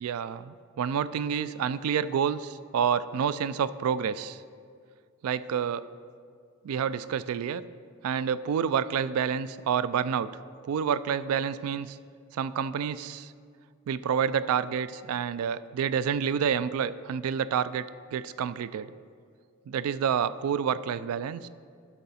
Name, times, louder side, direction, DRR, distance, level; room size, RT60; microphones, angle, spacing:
voice 1, 0.0-4.4 5.2-5.9 6.6-7.6 8.0-10.3 10.6-12.0 12.3-13.3 13.9-17.8 18.1-18.9 19.7-21.5, right 7 dB, 90° right, 17 dB, 0.3 m, -28 dB
11.5 x 5.5 x 4.2 m, 2.1 s
head